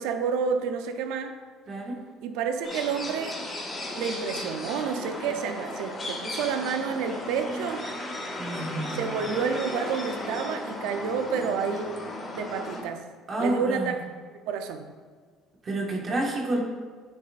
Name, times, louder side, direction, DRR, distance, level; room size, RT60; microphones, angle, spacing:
voice 1, 0.0-1.3 2.2-3.4 3.9-7.8 8.9-11.9 12.3-13.0 13.4-14.0 14.5-14.8, right 6 dB, 80° right, 7 dB, 0.7 m, -29 dB
voice 2, 1.7-2.0 8.4-9.2 13.3-14.0 15.6-16.6, right 1 dB, 40° right, -1 dB, 1.7 m, -29 dB
sound 1, 2.6-12.8, left 1 dB, 30° left, 2.1 m, -35 dB
9.3 x 7.1 x 2.6 m, 1.5 s
supercardioid pair, 80°, 0 cm